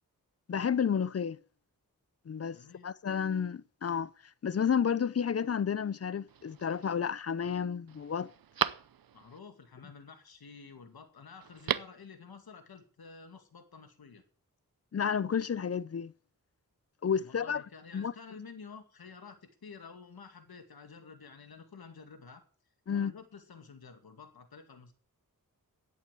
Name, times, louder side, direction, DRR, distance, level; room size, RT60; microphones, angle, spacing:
voice 1, 0.5-1.4 2.3-2.6 2.8-4.1 4.4-8.3 14.9-16.1 17.0-17.6 17.9-18.1 22.9-23.1, left 7 dB, 45° left, 0.5 m, -31 dB
voice 2, 2.4-2.9 9.1-14.2 17.2-22.4 22.9-24.9, left 5 dB, 85° left, 2.2 m, -51 dB
Telephone, 6.3-6.9 7.4-7.5 7.9-9.4 11.4-12.1 12.3-12.4, right 9 dB, 75° right, 0.7 m, -36 dB
10.5 x 8.5 x 8.2 m
wide cardioid pair, 95°, 36 cm